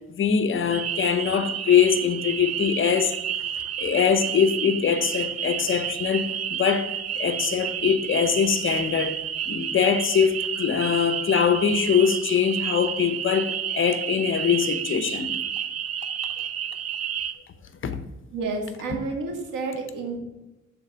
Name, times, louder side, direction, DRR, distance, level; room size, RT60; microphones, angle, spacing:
voice 1, 0.0-3.2 3.8-9.2 9.5-15.4 17.8-18.0, left 7 dB, 40° left, 0.7 m, -23 dB
sound 1, 0.7-17.3, right 9 dB, 55° right, 0.7 m, -30 dB
voice 2, 18.3-20.2, right 3 dB, 85° right, 2.1 m, -30 dB
7.1 x 4.2 x 6.7 m
cardioid pair, 125°, 30 cm